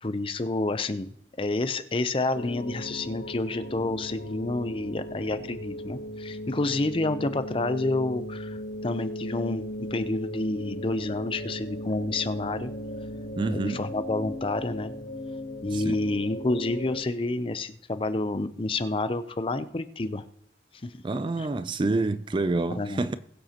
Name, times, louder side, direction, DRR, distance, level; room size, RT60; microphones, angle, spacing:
voice 1, 0.0-1.1 1.4-12.7 13.5-14.9 15.6-20.2 20.8-21.0 21.4-21.5 22.8-23.0, left 2 dB, 30° left, 0.5 m, -29 dB
sound 1, 2.3-17.0, equal, 50° left, 2.3 m, -37 dB
voice 2, 13.4-13.8 15.7-16.0 21.0-23.2, right 3 dB, 30° right, 0.4 m, -27 dB
21.0 x 7.8 x 2.9 m
head